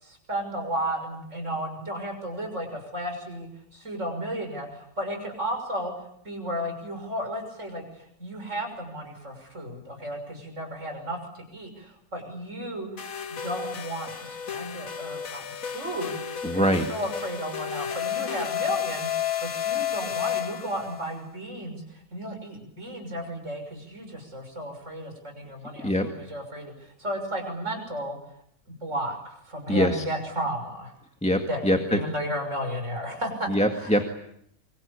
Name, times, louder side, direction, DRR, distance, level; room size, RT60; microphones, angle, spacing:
voice 1, 0.0-5.9 6.2-11.2 11.5-12.9 13.3-16.2 16.5-21.8 22.1-28.2 28.8-30.9 31.5-33.9, equal, 60° right, 5 dB, 6.5 m, -33 dB
sound 1, 13.0-21.1, left 9 dB, 80° left, 1.8 m, -32 dB
voice 2, 16.4-16.9 25.8-26.1 29.7-30.0 31.2-32.0 33.5-34.0, equal, 5° left, 5 dB, 1.9 m, -23 dB
26.0 x 26.0 x 8.6 m, 0.72 s
omnidirectional pair, 1.4 m